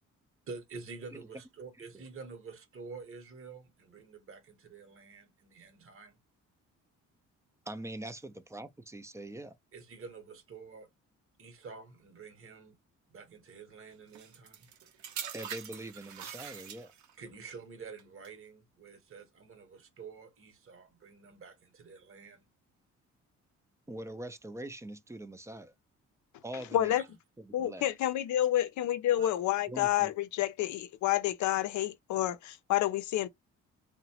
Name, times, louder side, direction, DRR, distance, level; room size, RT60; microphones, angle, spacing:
voice 1, 0.5-6.1 9.7-10.9 11.4-12.8 13.1-14.7 17.2-22.5 27.0-27.1 29.1-29.3, right 4 dB, 45° right, 1.0 m, -48 dB
voice 2, 7.7-9.6 15.3-16.9 23.9-25.7 26.4-27.0 27.4-27.8 29.7-30.1, right 1 dB, 10° right, 0.4 m, -43 dB
sound 1, 14.1-17.2 18.0-18.3, right 8 dB, 70° right, 0.7 m, -43 dB
voice 3, 26.7-27.0 27.5-33.3, left 13 dB, 70° left, 0.5 m, -29 dB
2.9 x 2.1 x 2.8 m
cardioid pair, 90°, 30 cm